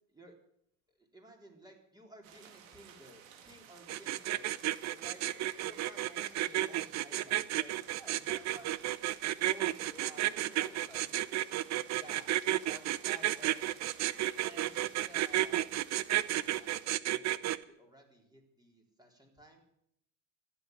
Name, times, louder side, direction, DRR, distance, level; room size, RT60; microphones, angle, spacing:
voice 1, 1.1-4.5 4.9-7.8 8.3-8.7 9.4-10.6 11.9-12.3 12.7-13.8 14.4-19.6, right 1 dB, 10° right, 1 dB, 3.9 m, -55 dB
sound 1, 2.2-16.9, right 8 dB, 70° right, 2.4 m, -55 dB
sound 2, 3.9-17.6, right 14 dB, 40° right, 0.8 m, -31 dB
voice 2, 7.9-8.6 9.8-11.2, equal, 5° left, 4 dB, 3.9 m, -55 dB
14.5 x 8.9 x 9.7 m, 0.73 s
hypercardioid pair, 85°, 40 cm